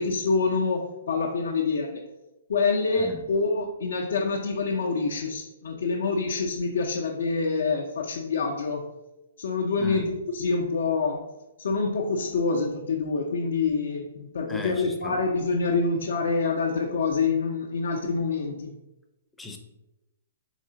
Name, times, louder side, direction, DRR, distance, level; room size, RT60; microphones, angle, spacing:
voice 1, 0.0-2.0 2.5-8.9 9.4-11.2 11.6-18.7, left 4 dB, 75° left, -1 dB, 0.5 m, -26 dB
voice 2, 14.5-15.2 19.4-19.6, left 3 dB, 5° left, 3 dB, 0.5 m, -36 dB
3.6 x 3.2 x 3.8 m, 0.99 s
hypercardioid pair, 145°, 0 cm